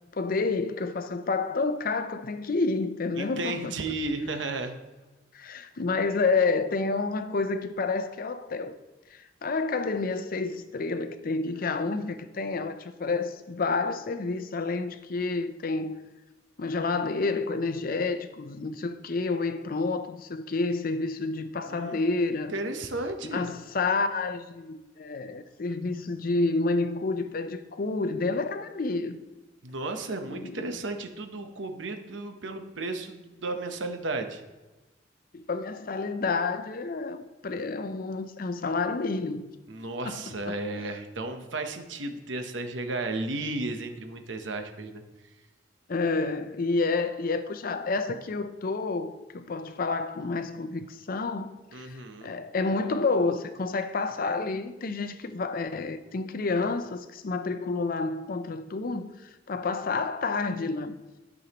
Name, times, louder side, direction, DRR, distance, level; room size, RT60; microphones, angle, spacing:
voice 1, 0.1-3.7 5.3-8.8 9.1-16.0 16.6-22.5 23.3-29.2 30.3-30.7 35.3-39.4 40.0-40.6 45.9-52.0 52.2-59.1 59.5-61.0, left 3 dB, 50° left, 0.5 m, -29 dB
voice 2, 3.2-4.7 21.7-23.5 29.6-34.4 39.7-45.0 51.7-52.3, right 2 dB, 85° right, 0.9 m, -34 dB
12.5 x 6.3 x 3.0 m
head